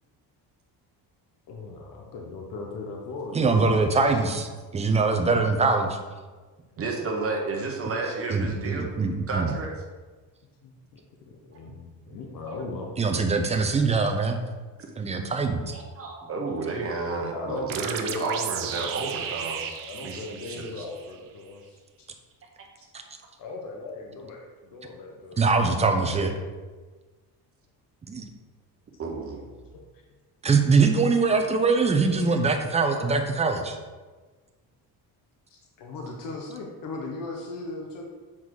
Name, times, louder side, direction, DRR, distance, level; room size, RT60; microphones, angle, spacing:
voice 1, 1.5-3.7 4.8-4.9 10.6-11.0 11.3-12.9 17.2-18.9 19.9-21.8 23.4-25.5 25.9-26.4 29.7-29.8 35.5-38.0, left 2 dB, 55° left, 0 dB, 1.0 m, -38 dB
voice 2, 3.3-6.0 8.3-9.5 13.0-14.4 15.0-15.7 25.4-26.3 28.1-28.3 30.4-33.8, right 4 dB, 15° right, 4 dB, 0.6 m, -23 dB
voice 3, 6.8-8.9 9.3-9.7 12.5-12.6 13.9-14.0 15.7-19.7 20.0-20.8 29.0-29.6, right 3 dB, 35° right, 0 dB, 1.1 m, -32 dB
sound 1, 17.7-21.2, right 8 dB, 55° right, 0.7 m, -34 dB
7.3 x 4.0 x 4.7 m, 1.3 s
cardioid pair, 160°, 39 cm